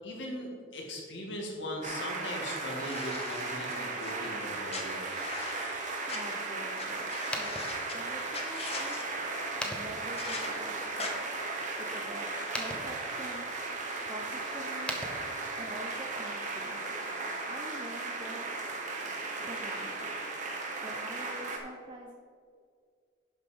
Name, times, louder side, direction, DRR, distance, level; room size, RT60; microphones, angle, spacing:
voice 1, 0.0-5.0, left 1 dB, 65° left, 0 dB, 2.0 m, -39 dB
sound 1, 1.8-21.6, right 3 dB, 40° right, 1.2 m, -36 dB
sound 2, 2.7-4.1 4.7-6.2 6.8-6.9 7.1-7.9 8.3-9.0 10.2-10.5 11.0-11.1, left 3 dB, 35° left, 1.1 m, -40 dB
voice 2, 6.1-7.1 7.3-7.5 7.9-9.1 9.6-11.2 11.8-13.5 14.1-15.0 15.6-16.9 17.4-18.5 19.4-20.1 20.8-22.1, right 1 dB, 25° right, 0 dB, 0.7 m, -45 dB
sound 3, 7.2-15.9, left 1 dB, 5° left, 0.9 m, -44 dB
11.0 x 5.6 x 5.1 m, 2.2 s
head